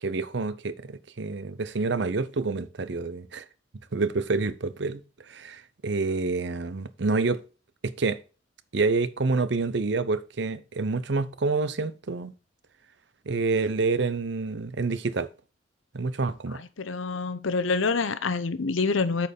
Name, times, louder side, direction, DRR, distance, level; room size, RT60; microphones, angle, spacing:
voice 1, 0.0-3.4 3.9-5.0 5.3-7.4 7.8-8.2 8.7-12.3 13.3-15.3 15.9-16.6, right 3 dB, 65° right, 0.6 m, -28 dB
voice 2, 16.5-19.3, left 4 dB, 80° left, 0.7 m, -27 dB
8.6 x 4.6 x 5.2 m
head